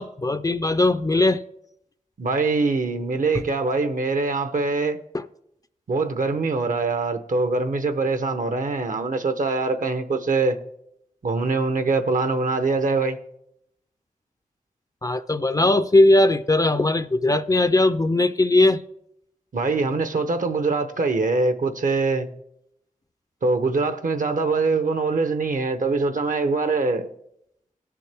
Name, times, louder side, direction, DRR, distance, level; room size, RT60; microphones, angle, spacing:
voice 1, 0.0-1.4 5.1-5.2 15.0-18.8, left 2 dB, 25° left, 0.4 m, -19 dB
voice 2, 2.2-5.0 5.9-10.6 11.2-13.2 19.5-22.3 23.4-27.1, right 3 dB, 70° right, 0.8 m, -23 dB
17.0 x 6.8 x 3.4 m
wide cardioid pair, 100°, 14 cm